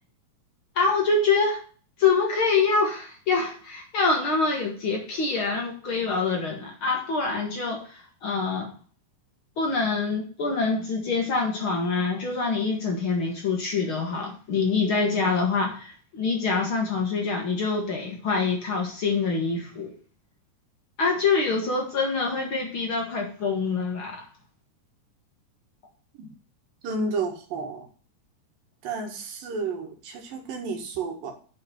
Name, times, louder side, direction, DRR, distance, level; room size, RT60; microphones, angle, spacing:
voice 1, 0.7-1.6 2.0-8.7 9.6-19.9 21.0-24.2, left 4 dB, 50° left, 1 dB, 1.7 m, -25 dB
voice 2, 26.8-27.9 28.8-31.3, right 3 dB, 80° right, 3 dB, 3.3 m, -31 dB
7.6 x 5.2 x 7.3 m, 0.41 s
omnidirectional pair, 4.0 m